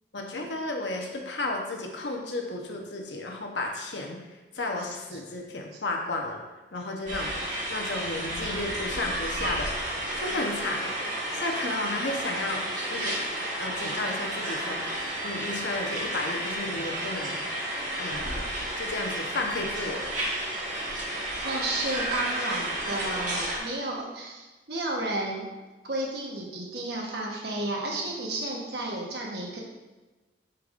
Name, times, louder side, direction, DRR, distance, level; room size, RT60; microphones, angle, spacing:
voice 1, 0.1-4.2 4.5-6.4 6.7-7.3 7.7-9.7 10.2-11.0 11.3-13.2 13.6-15.0 15.2-17.4 18.0-18.4 18.8-20.1, left 2 dB, 90° left, 1 dB, 1.0 m, -33 dB
sound 1, 7.1-23.6, right 1 dB, 45° right, 1.7 m, -32 dB
voice 2, 21.4-25.5 25.8-29.6, right 2 dB, 70° right, -1 dB, 1.3 m, -32 dB
9.4 x 4.6 x 2.6 m, 1.2 s
head